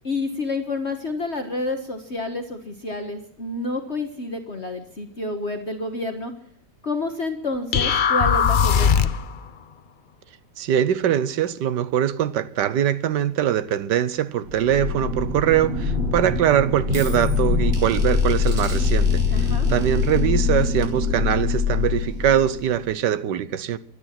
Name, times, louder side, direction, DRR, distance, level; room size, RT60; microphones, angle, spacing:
voice 1, 0.0-6.3 6.8-9.1 19.3-19.7, left 2 dB, 40° left, 1.5 m, -29 dB
sound 1, 7.7-9.3, left 7 dB, 80° left, 0.4 m, -19 dB
voice 2, 10.6-23.8, right 10 dB, 70° right, 1.5 m, -22 dB
sound 2, 14.4-22.9, left 4 dB, 35° right, 4.5 m, -23 dB
23.5 x 10.5 x 5.9 m
omnidirectional pair, 2.0 m